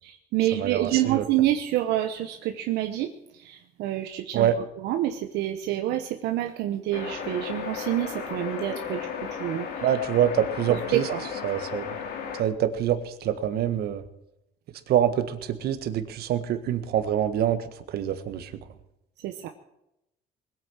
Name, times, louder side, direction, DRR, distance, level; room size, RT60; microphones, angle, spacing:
voice 1, 0.0-9.9 10.7-11.2 19.2-19.5, right 13 dB, 85° right, 4 dB, 1.1 m, -28 dB
voice 2, 0.5-1.2 4.3-4.6 9.8-11.0 11.4-11.9 12.4-14.0 14.9-18.5, right 10 dB, 70° right, 9 dB, 1.6 m, -25 dB
sound 1, 6.9-12.4, left 7 dB, 70° left, 2.8 m, -34 dB
20.5 x 9.2 x 6.3 m, 0.85 s
cardioid pair, 110°, 17 cm